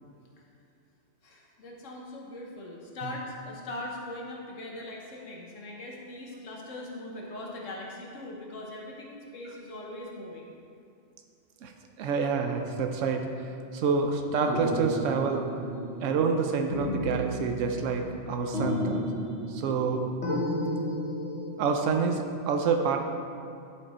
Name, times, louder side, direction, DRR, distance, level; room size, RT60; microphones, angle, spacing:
voice 1, 1.2-10.5, left 1 dB, 85° left, -2 dB, 1.4 m, -40 dB
voice 2, 12.0-15.4 16.0-19.1 19.5-20.0 21.6-23.0, right 5 dB, 85° right, 4 dB, 1.0 m, -27 dB
sound 1, 14.5-16.4 16.7-18.2 18.5-19.9 20.2-21.6, left 1 dB, 60° left, 1.4 m, -32 dB
11.0 x 5.1 x 4.3 m, 2.6 s
omnidirectional pair, 1.3 m